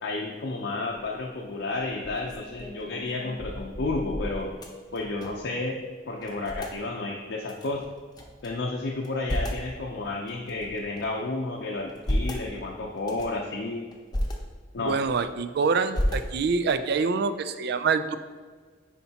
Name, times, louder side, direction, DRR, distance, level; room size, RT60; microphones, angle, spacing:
voice 1, 0.0-4.5 4.9-5.8 6.1-7.8 8.4-13.8 14.7-14.9, left 2 dB, 70° left, -2 dB, 0.6 m, -31 dB
metalbox-openclose, 0.9-1.3 1.8-5.5 5.8-5.9 6.2-6.8 7.4-8.5 8.9-9.7 10.3-11.2 11.7-12.4 13.0-13.4 13.9-14.3 14.8-15.5 15.9-16.7, equal, 25° left, 0.8 m, -33 dB
voice 2, 14.8-18.1, right 5 dB, 60° right, 11 dB, 0.4 m, -26 dB
9.9 x 4.3 x 2.8 m, 1.5 s
head